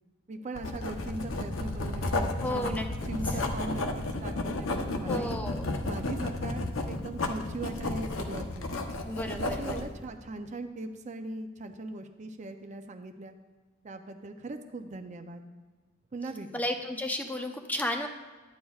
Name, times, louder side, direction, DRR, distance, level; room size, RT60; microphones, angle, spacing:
voice 1, 0.3-5.4 5.8-8.8 9.3-13.3 13.8-15.4 16.1-16.6, right 2 dB, 35° right, 6 dB, 0.5 m, -40 dB
Writing, 0.6-9.9, left 2 dB, 90° left, 0.8 m, -32 dB
voice 2, 2.4-2.9 3.3-3.4 5.1-5.7 9.1-9.9 16.5-18.1, left 1 dB, 10° left, 4 dB, 0.6 m, -33 dB
12.0 x 9.2 x 2.4 m, 1.4 s
head